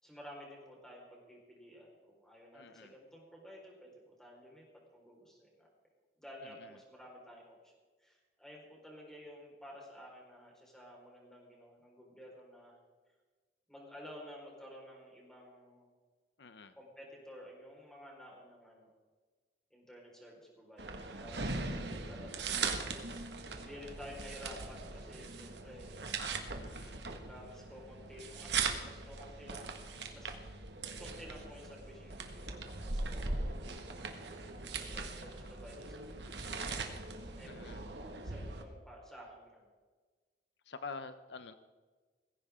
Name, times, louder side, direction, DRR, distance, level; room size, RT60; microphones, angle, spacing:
voice 1, 0.0-4.7 4.9-5.7 6.2-7.7 8.0-12.8 13.7-15.9 16.8-18.9 19.7-22.8 23.6-26.0 27.1-30.3 30.8-32.6 32.8-34.2 34.8-36.9 37.4-37.8 38.2-39.7, equal, 5° left, -3 dB, 4.6 m, -53 dB
voice 2, 2.5-2.9 6.4-6.7 16.4-16.7 26.6-27.0 37.5-37.9 40.7-41.5, left 4 dB, 75° left, 11 dB, 0.7 m, -47 dB
sound 1, 20.8-38.6, right 4 dB, 80° right, 1.8 m, -40 dB
19.5 x 16.5 x 3.7 m, 1.4 s
head